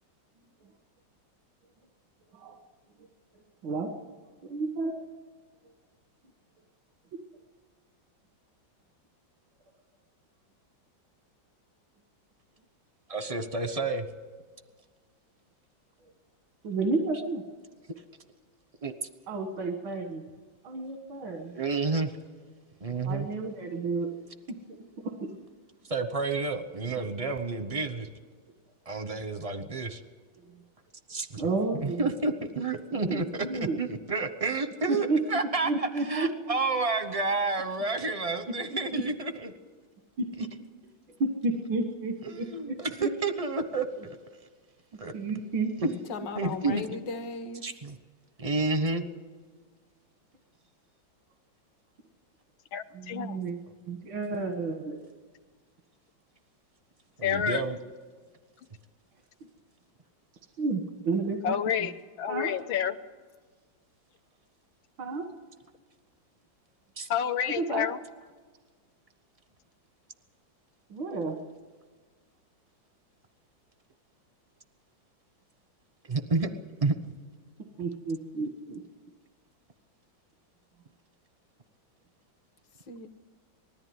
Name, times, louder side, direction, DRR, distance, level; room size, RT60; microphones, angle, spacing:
voice 1, 4.4-5.0 16.6-17.4 19.3-20.2 20.6-21.5 23.0-24.1 25.0-25.3 31.4-32.1 32.9-33.8 34.9-35.2 35.6-36.5 38.9-39.0 40.2-40.3 41.2-43.1 45.1-45.7 52.9-53.6 53.9-55.0 60.6-61.5 62.3-62.5 65.0-65.2 67.6-67.9 70.9-71.4 77.8-78.8, right 3 dB, 90° right, 4 dB, 2.3 m, -31 dB
voice 2, 13.1-14.1 18.8-18.9 21.6-22.1 22.8-23.3 25.9-28.1 28.9-30.0 31.1-31.5 31.8-39.5 42.3-44.2 45.0-45.1 45.8-45.9 46.4-47.0 47.6-48.0 48.4-49.0 57.2-57.8 67.0-67.1 76.1-76.5 76.8-76.9, right 3 dB, 30° right, 9 dB, 0.6 m, -30 dB
voice 3, 46.1-47.7 82.9-83.1, left 4 dB, 70° left, 8 dB, 1.8 m, -36 dB
voice 4, 52.7-53.4 57.2-57.6 61.4-61.9 62.2-62.9 67.1-68.0, left 9 dB, 85° left, 9 dB, 1.7 m, -29 dB
20.0 x 14.0 x 9.5 m, 1.5 s
omnidirectional pair, 2.1 m